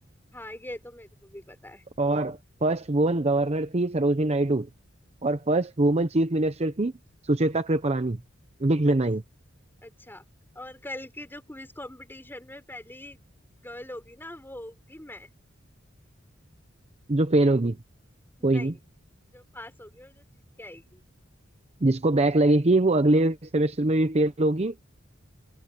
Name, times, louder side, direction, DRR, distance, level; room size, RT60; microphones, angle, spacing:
voice 1, 0.3-1.8 8.9-9.0 9.8-10.3 10.6-13.2 13.6-15.3 18.4-18.8 19.3-20.3 20.6-21.0, left 1 dB, 10° left, 5.2 m, -42 dB
voice 2, 2.0-4.7 5.2-6.9 7.3-8.2 8.6-9.2 17.1-17.8 18.4-18.7 21.8-24.7, right 2 dB, 35° right, 0.8 m, -23 dB
head